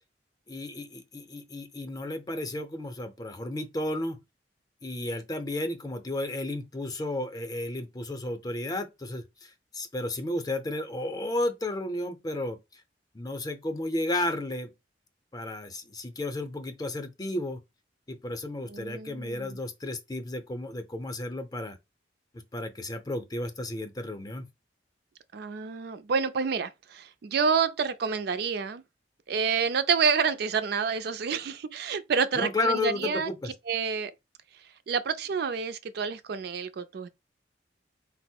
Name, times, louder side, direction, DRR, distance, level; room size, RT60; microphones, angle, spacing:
voice 1, 0.5-4.2 4.8-12.8 13.1-14.7 15.3-17.6 18.1-21.8 22.5-24.5 32.3-33.5, left 2 dB, 20° left, 0.6 m, -33 dB
voice 2, 18.6-19.6 25.3-28.8 29.3-33.3 33.7-34.1 34.9-37.1, right 5 dB, 60° right, 0.4 m, -28 dB
4.4 x 2.0 x 4.4 m
head